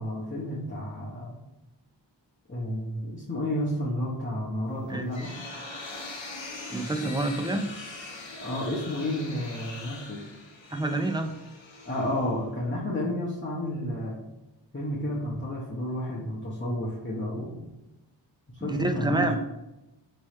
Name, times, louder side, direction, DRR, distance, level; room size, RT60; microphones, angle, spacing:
voice 1, 0.0-1.4 2.5-5.3 8.4-10.2 11.8-14.2 14.7-17.6 18.6-19.4, left 1 dB, 25° left, -8 dB, 1.0 m, -31 dB
sound 1, 4.8-12.6, left 3 dB, 90° left, 0.7 m, -42 dB
voice 2, 6.7-7.7 10.7-11.4 18.6-19.4, right 2 dB, 10° right, 6 dB, 0.4 m, -27 dB
3.4 x 3.1 x 4.3 m, 0.95 s
wide cardioid pair, 40°, 44 cm